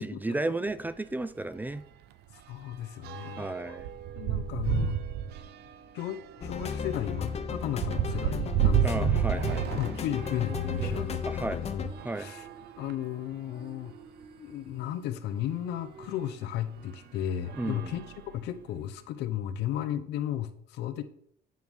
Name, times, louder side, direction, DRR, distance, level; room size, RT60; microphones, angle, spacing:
voice 1, 0.0-1.8 3.4-3.9 8.8-9.7 11.2-11.6 12.0-12.3 17.6-17.9, right 2 dB, 10° right, 0.4 m, -33 dB
sound 1, 0.7-0.9 1.2-1.4 1.7-11.1 11.9-13.2 13.9-14.0 14.2-14.3 16.0-16.1 16.8-17.1 17.4-18.7, right 10 dB, 75° right, 0.6 m, -32 dB
voice 2, 2.5-3.8 4.2-5.0 5.9-9.2 9.8-11.9 12.2-12.5 12.8-13.9 14.4-18.0 18.3-21.0, left 10 dB, 85° left, 0.8 m, -34 dB
sound 2, 6.4-11.9, left 6 dB, 40° left, 0.8 m, -35 dB
sound 3, 9.9-18.1, right 2 dB, 30° right, 1.1 m, -50 dB
9.3 x 3.5 x 6.2 m
cardioid pair, 110°, 17 cm